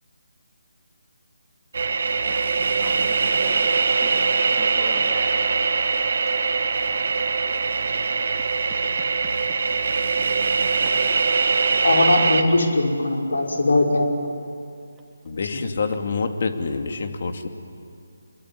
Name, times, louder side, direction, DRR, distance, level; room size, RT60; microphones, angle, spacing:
sound 1, 1.7-12.4, right 4 dB, 55° right, 1.9 m, -22 dB
voice 1, 2.2-4.3 4.6-5.5 6.2-6.4 8.7-9.2 12.5-12.6, right 4 dB, 10° right, 0 dB, 2.9 m, -42 dB
voice 2, 11.8-14.3, left 2 dB, 75° left, 1 dB, 5.4 m, -20 dB
voice 3, 15.2-17.5, left 4 dB, 50° left, 6 dB, 2.6 m, -27 dB
26.0 x 22.5 x 9.9 m, 2.4 s
figure-of-eight pair, 160°, 0 cm